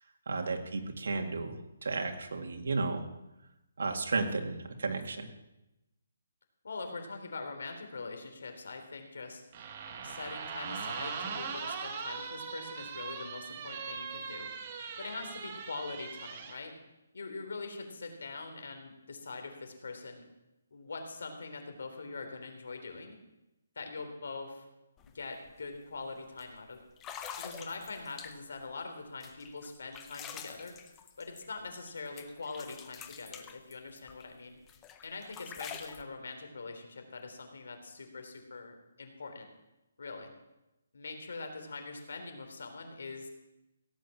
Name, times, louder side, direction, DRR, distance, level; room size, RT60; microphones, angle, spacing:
voice 1, 0.3-3.0 3.8-5.3, right 3 dB, 70° right, 4 dB, 2.2 m, -33 dB
voice 2, 6.6-9.4 10.0-14.5 15.0-16.7 17.1-20.2 20.7-23.2 23.8-24.7 25.1-26.8 27.4-30.7 31.2-34.6 35.0-39.5 40.0-40.3 40.9-43.3, left 3 dB, 70° left, 5 dB, 3.6 m, -43 dB
sound 1, 9.5-16.6, right 5 dB, 30° right, 1.5 m, -40 dB
sound 2, 25.0-25.1 25.5-25.8 26.4-26.5 27.0-28.6 29.2-31.9 32.2-34.3 34.7-36.0, left 8 dB, 10° left, 0.8 m, -46 dB
17.0 x 8.6 x 7.3 m, 0.94 s
hypercardioid pair, 170°, 0 cm